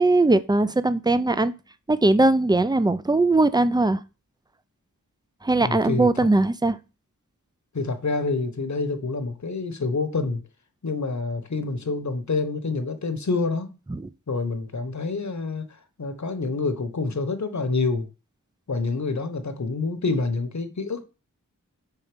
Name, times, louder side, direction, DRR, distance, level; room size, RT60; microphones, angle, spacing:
voice 1, 0.0-1.5 1.9-4.0 5.4-6.8 13.9-14.1, right 2 dB, 10° right, 0.5 m, -20 dB
voice 2, 5.6-6.1 7.7-10.4 10.8-13.8 14.3-15.7 16.0-18.1 18.7-21.1, left 3 dB, 55° left, 1.1 m, -27 dB
5.3 x 4.6 x 5.1 m
wide cardioid pair, 50°, 34 cm